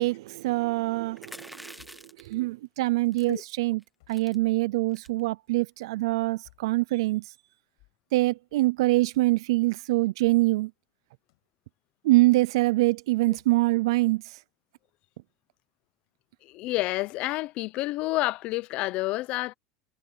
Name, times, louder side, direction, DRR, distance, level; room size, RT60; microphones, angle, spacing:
voice 1, 0.0-1.7 2.2-3.8 4.1-7.2 8.1-10.7 12.0-14.4, right 20 dB, 85° right, 0.4 m, -24 dB
sound 1, 1.2-2.3 3.1-3.4 3.8-3.9 4.1-4.4 4.9-5.2, equal, ahead, 1.0 m, -46 dB
sound 2, 1.8-2.2 4.0-4.3 6.4-6.8 9.1-9.4 11.3-11.5 13.3-13.6, left 19 dB, 80° left, 6.0 m, -61 dB
voice 2, 16.4-19.5, left 19 dB, 50° left, 0.7 m, -29 dB
supercardioid pair, 145°, 3 cm